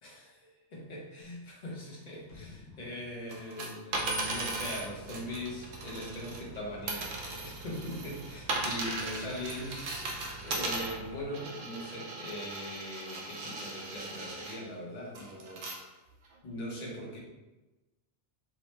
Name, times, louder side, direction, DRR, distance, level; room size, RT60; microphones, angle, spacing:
voice 1, 0.0-10.2 10.4-16.0 16.4-17.2, left 1 dB, 45° left, -3 dB, 0.7 m, -41 dB
sound 1, 2.3-5.1 5.4-5.5, left 3 dB, 85° left, 0.9 m, -55 dB
sound 2, 3.3-6.6 6.9-14.6 15.1-15.8 16.3-16.4, right 2 dB, 60° right, 0.6 m, -37 dB
sound 3, 3.9-11.2, right 3 dB, 85° right, 0.9 m, -49 dB
2.9 x 2.0 x 3.1 m, 1.1 s
omnidirectional pair, 1.2 m